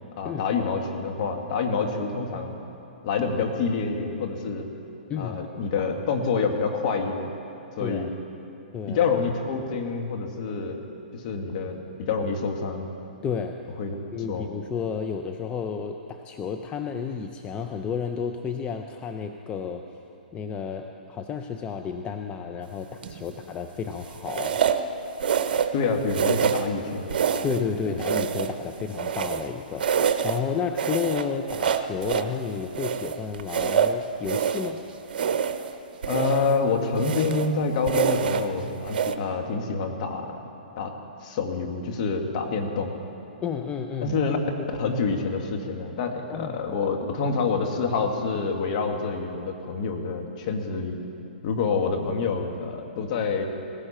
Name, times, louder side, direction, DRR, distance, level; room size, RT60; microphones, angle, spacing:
voice 1, 0.2-2.6 3.0-4.7 5.2-7.3 7.8-8.1 8.9-10.8 11.1-12.9 13.8-13.9 14.3-14.5 25.7-27.2 27.9-28.0 36.0-40.4 40.8-40.9 41.2-42.9 44.0-44.4 44.8-51.0 51.4-53.4, left 4 dB, 50° left, 3 dB, 2.0 m, -27 dB
voice 2, 13.2-13.5 14.1-19.8 20.3-24.6 27.4-34.8 43.4-44.1 44.6-44.7 46.3-46.6, left 6 dB, 20° left, 5 dB, 0.6 m, -31 dB
sound 1, 23.0-23.3 24.3-24.9 25.2-25.8 26.1-26.7 27.1-27.7 28.0-29.5 29.8-30.4 30.8-32.3 32.7-34.7 35.1-35.7 36.0-36.6 37.0-37.5 37.9-38.5 38.9-39.1, right 7 dB, 65° right, 0.8 m, -26 dB
19.0 x 16.0 x 4.4 m, 2.9 s
hypercardioid pair, 130°, 5 cm